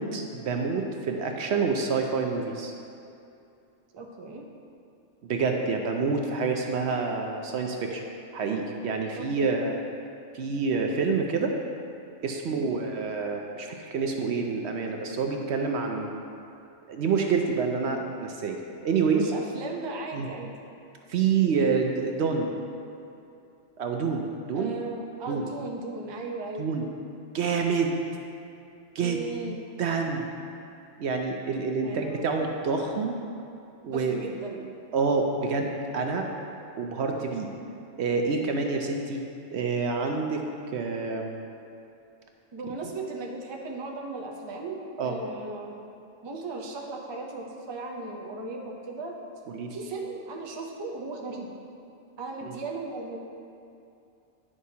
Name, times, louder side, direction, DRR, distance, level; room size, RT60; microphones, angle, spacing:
voice 1, 0.0-2.7 5.2-8.0 8.3-9.8 10.3-11.5 12.2-16.1 16.9-19.3 20.1-20.3 21.1-22.5 23.8-24.8 25.3-25.5 26.6-26.8 27.3-27.9 28.9-29.2 29.8-30.2 31.0-33.2 33.8-34.2 34.9-36.3 36.8-37.5 38.0-39.2 39.5-40.4 40.7-41.4 45.0-45.2 49.5-49.7 52.4-52.6, right 4 dB, 65° right, 3 dB, 0.8 m, -27 dB
voice 2, 3.9-4.5 9.2-9.6 12.5-12.9 19.1-20.5 24.5-26.7 29.0-29.6 31.8-32.3 33.9-34.7 42.5-45.8 46.2-49.2 49.7-51.5 52.2-53.2, right 3 dB, 30° right, 0 dB, 0.5 m, -37 dB
9.7 x 6.2 x 2.8 m, 2.6 s
omnidirectional pair, 1.3 m